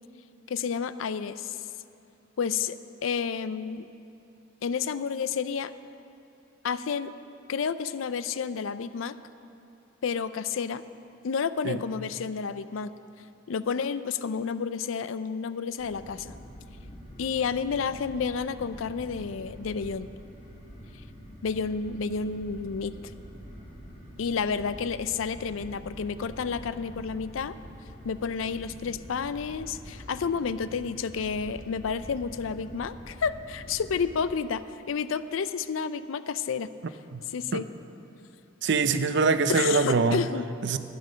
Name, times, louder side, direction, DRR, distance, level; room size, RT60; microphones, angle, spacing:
voice 1, 0.5-1.6 2.4-2.8 3.0-3.9 4.6-5.7 6.6-7.1 7.5-9.2 10.0-10.8 11.2-12.9 13.5-16.3 17.2-20.1 21.4-23.0 24.2-27.5 28.0-36.7 37.3-37.7 39.5-40.5, left 6 dB, 80° left, 14 dB, 0.4 m, -30 dB
sound 1, 15.8-34.2, equal, 45° left, 2.6 m, -46 dB
voice 2, 38.6-40.2 40.6-40.8, right 4 dB, 60° right, 11 dB, 0.5 m, -23 dB
12.0 x 9.6 x 6.3 m, 2.7 s
head